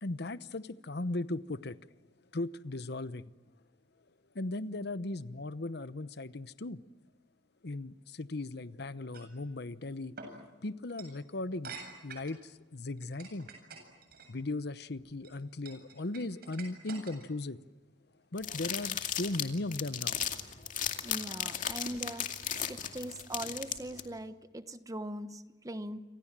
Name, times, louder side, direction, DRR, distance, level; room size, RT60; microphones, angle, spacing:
voice 1, 0.0-1.8 2.3-3.3 4.3-6.8 7.6-10.1 10.6-11.8 12.0-13.5 14.3-17.6 18.3-20.2, left 2 dB, 65° left, 14 dB, 0.9 m, -37 dB
sound 1, 9.1-9.3 10.2-10.3 10.9-11.1 11.6-12.4 13.0-14.3 15.0-15.3 15.7-17.4, right 4 dB, 60° right, 7.8 m, -47 dB
sound 2, 18.4-24.0, left 9 dB, 45° left, 2.4 m, -35 dB
voice 2, 21.0-22.3 22.5-26.0, right 1 dB, 20° right, 11 dB, 1.1 m, -41 dB
29.5 x 25.5 x 7.5 m, 1.2 s
head